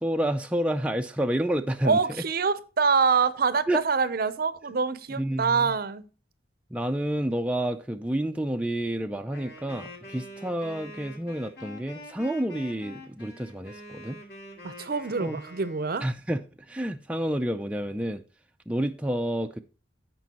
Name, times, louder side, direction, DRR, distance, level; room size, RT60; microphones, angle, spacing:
voice 1, 0.0-2.0 3.7-3.8 5.1-5.7 6.7-14.2 15.2-15.4 16.0-18.2 18.7-19.6, right 1 dB, 5° right, 0.4 m, -29 dB
voice 2, 1.8-6.0 14.6-16.1, right 5 dB, 50° right, 0.6 m, -25 dB
Wind instrument woodwind instrument, 9.3-16.0, left 1 dB, 60° left, 2.5 m, -45 dB
15.0 x 5.2 x 2.9 m
head